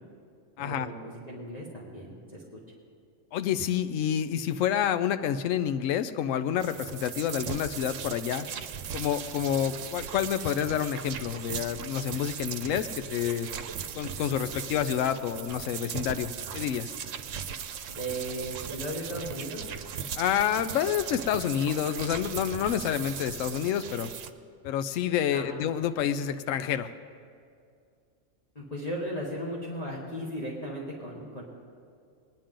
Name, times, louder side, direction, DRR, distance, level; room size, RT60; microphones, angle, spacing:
voice 1, 0.6-2.6 17.9-19.7 25.3-25.6 28.5-31.4, equal, 30° left, -5 dB, 1.6 m, -36 dB
voice 2, 3.3-8.4 8.9-13.5 14.0-16.9 20.2-24.1 24.6-26.9, left 9 dB, 80° left, 11 dB, 0.9 m, -28 dB
sound 1, 6.6-24.3, right 8 dB, 80° right, 1.0 m, -38 dB
21.0 x 10.0 x 3.8 m, 2.3 s
omnidirectional pair, 1.3 m